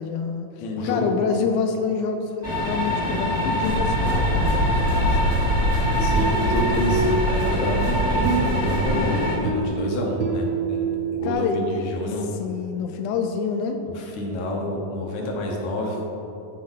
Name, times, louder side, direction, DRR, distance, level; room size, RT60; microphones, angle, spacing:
voice 1, 0.0-5.4 11.2-11.8 12.4-13.8, left 6 dB, 85° left, 5 dB, 1.7 m, -27 dB
voice 2, 0.6-1.1 6.0-12.3 13.9-16.0, left 1 dB, 65° left, -1 dB, 2.2 m, -29 dB
sound 1, 2.4-9.4, left 1 dB, 25° left, 0.8 m, -25 dB
sound 2, 3.6-9.0, equal, 45° right, 0.4 m, -25 dB
sound 3, 5.8-11.3, right 3 dB, 80° right, 2.4 m, -27 dB
11.5 x 5.1 x 4.0 m, 3.0 s
omnidirectional pair, 4.0 m